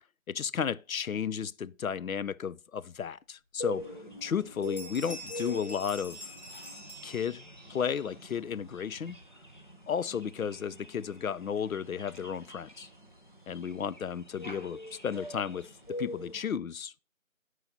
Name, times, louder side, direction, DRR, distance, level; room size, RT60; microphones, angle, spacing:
voice 1, 0.3-3.9 4.2-6.3 7.0-9.2 9.9-12.9 13.5-17.0, left 7 dB, 90° left, 0.5 m, -33 dB
sound 1, 3.6-3.7 4.1-4.4 4.6-7.8, equal, 55° left, 1.8 m, -46 dB
sound 2, 3.6-16.5, left 1 dB, 35° left, 0.7 m, -44 dB
13.5 x 4.8 x 2.6 m
figure-of-eight pair, 175°, 40 cm